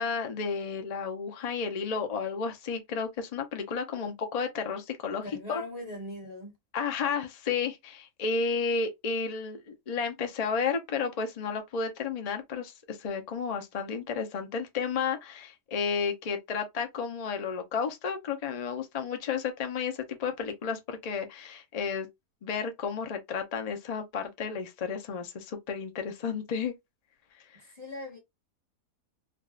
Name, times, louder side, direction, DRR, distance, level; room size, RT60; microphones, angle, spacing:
voice 1, 0.0-5.6 6.7-22.1 22.4-26.7, left 5 dB, 65° left, 0.3 m, -32 dB
voice 2, 5.2-6.6 27.5-28.2, left 1 dB, 25° left, 1.2 m, -40 dB
3.5 x 2.3 x 2.4 m
omnidirectional pair, 1.7 m